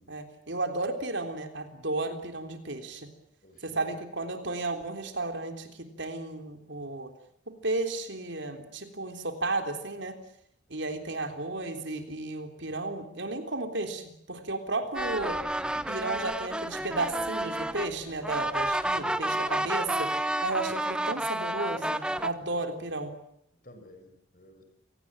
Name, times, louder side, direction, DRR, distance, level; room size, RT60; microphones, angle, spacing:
voice 1, 0.1-3.1 3.6-7.1 7.5-10.2 10.7-15.4 15.9-20.1 20.4-23.1, right 2 dB, 70° right, 6 dB, 3.6 m, -33 dB
voice 2, 3.4-4.0 19.0-19.6 22.6-22.7 23.6-24.6, left 1 dB, 45° left, 7 dB, 6.3 m, -53 dB
sound 1, 14.9-22.3, right 1 dB, 5° right, 0.9 m, -30 dB
28.5 x 18.5 x 8.8 m, 0.74 s
head